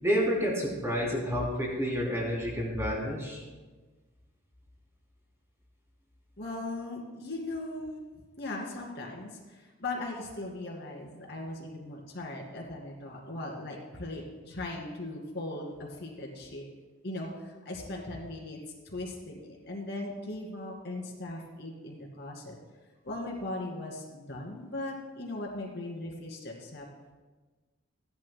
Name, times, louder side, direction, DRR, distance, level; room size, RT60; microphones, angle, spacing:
voice 1, 0.0-3.4, equal, 15° right, -3 dB, 2.9 m, -29 dB
voice 2, 6.4-8.0 8.4-16.6 17.0-18.6 18.8-22.6 23.0-26.8, left 2 dB, 50° left, -2 dB, 2.3 m, -38 dB
17.0 x 11.5 x 2.2 m, 1.3 s
head